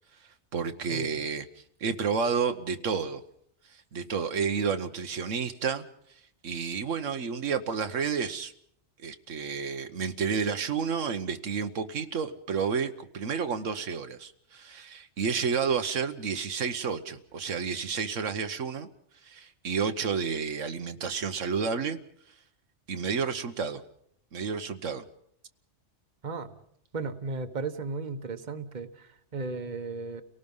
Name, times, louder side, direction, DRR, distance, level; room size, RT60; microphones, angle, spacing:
voice 1, 0.5-1.4 1.8-3.2 3.7-5.8 6.4-8.5 9.0-18.9 19.2-22.0 22.9-23.8 24.3-25.0, right 6 dB, 80° right, 8 dB, 1.4 m, -30 dB
voice 2, 26.9-30.2, right 3 dB, 40° right, 8 dB, 1.3 m, -35 dB
30.0 x 18.5 x 5.5 m, 0.65 s
omnidirectional pair, 1.3 m